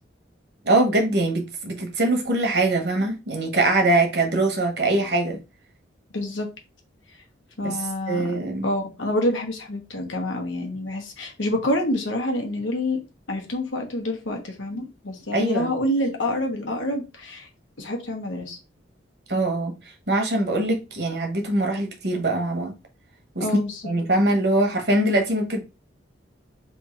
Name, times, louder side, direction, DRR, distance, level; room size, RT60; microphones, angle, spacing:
voice 1, 0.6-5.4 7.6-7.7 8.1-8.7 15.3-15.7 19.3-19.7 20.1-22.7 23.3-23.4 23.8-25.6, right 2 dB, 55° right, 1.1 m, -22 dB
voice 2, 6.1-6.5 7.6-13.0 13.3-17.5 17.8-18.6 23.4-23.8, left 1 dB, 85° left, 1.2 m, -27 dB
3.5 x 2.7 x 4.3 m
head